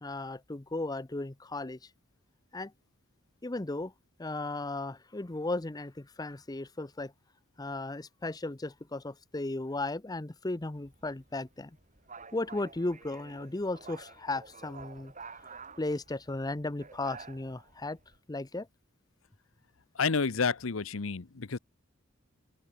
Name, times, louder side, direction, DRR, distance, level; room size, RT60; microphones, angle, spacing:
voice 1, 0.0-1.8 2.5-2.7 3.4-3.9 4.2-7.1 7.6-11.7 12.3-15.1 15.8-18.0 18.3-18.7, left 2 dB, 20° left, 0.7 m, -35 dB
sound 1, 10.7-18.2, right 4 dB, 40° right, 7.7 m, -50 dB
voice 2, 19.9-21.6, left 5 dB, 90° left, 0.9 m, -30 dB
open air
head